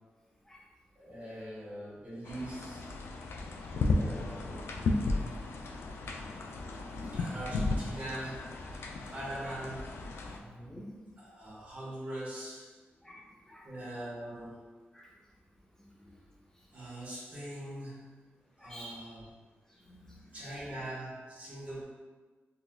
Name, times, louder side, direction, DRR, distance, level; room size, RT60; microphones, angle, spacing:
voice 1, 0.9-2.8 3.9-4.7 7.1-8.6 9.1-10.0 11.2-12.7 13.6-14.6 16.7-18.1 18.6-19.3 20.3-21.9, right 1 dB, 35° right, -10 dB, 1.3 m, -42 dB
sound 1, 2.2-10.4, left 3 dB, 75° left, 0.3 m, -34 dB
voice 2, 10.4-10.9 13.0-13.6 14.9-15.1 18.6-19.0 19.9-20.2, equal, 15° left, -4 dB, 0.6 m, -49 dB
3.9 x 2.4 x 2.3 m, 1.3 s
wide cardioid pair, 115°, 4 cm